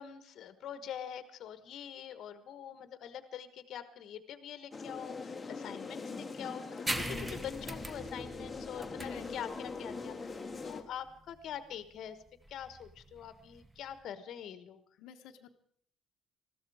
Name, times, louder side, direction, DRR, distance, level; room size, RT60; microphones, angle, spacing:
voice 1, 0.0-12.2 12.5-14.8, left 9 dB, 50° left, 12 dB, 1.2 m, -44 dB
sound 1, 4.7-10.8, left 4 dB, 15° left, 1.1 m, -42 dB
sound 2, 6.9-14.0, right 1 dB, 10° right, 0.8 m, -42 dB
voice 2, 15.0-15.5, left 9 dB, 80° left, 4 dB, 1.1 m, -49 dB
20.5 x 14.0 x 4.8 m, 0.62 s
cardioid pair, 170°, 0 cm